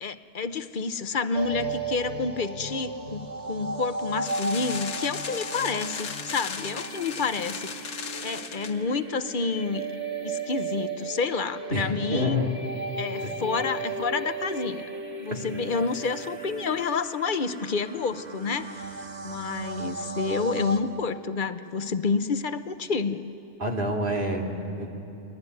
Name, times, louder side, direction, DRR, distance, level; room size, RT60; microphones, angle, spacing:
voice 1, 0.0-9.9 10.2-12.6 12.9-14.9 15.2-18.9 19.2-23.3, left 4 dB, 45° left, 11 dB, 0.9 m, -29 dB
sound 1, 1.3-20.8, right 3 dB, 60° right, 1.9 m, -35 dB
sound 2, 4.2-8.8, left 6 dB, 90° left, 1.5 m, -36 dB
voice 2, 11.7-12.5 13.2-13.3 15.3-15.4 23.6-24.9, left 1 dB, 45° right, 1 dB, 2.6 m, -28 dB
29.5 x 21.0 x 9.5 m, 2.8 s
omnidirectional pair, 1.3 m